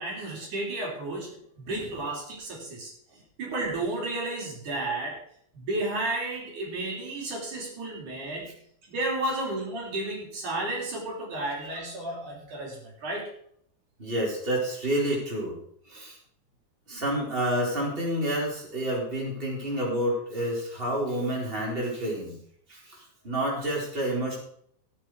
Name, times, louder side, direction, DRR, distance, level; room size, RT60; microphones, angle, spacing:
voice 1, 0.0-2.9 3.4-5.2 5.5-8.6 8.9-13.3, right 2 dB, 75° right, -2 dB, 5.0 m, -32 dB
voice 2, 14.0-15.6 15.9-16.2 16.9-22.4 22.7-24.4, right 1 dB, 15° right, -3 dB, 4.3 m, -29 dB
16.5 x 8.8 x 4.8 m, 0.66 s
omnidirectional pair, 3.5 m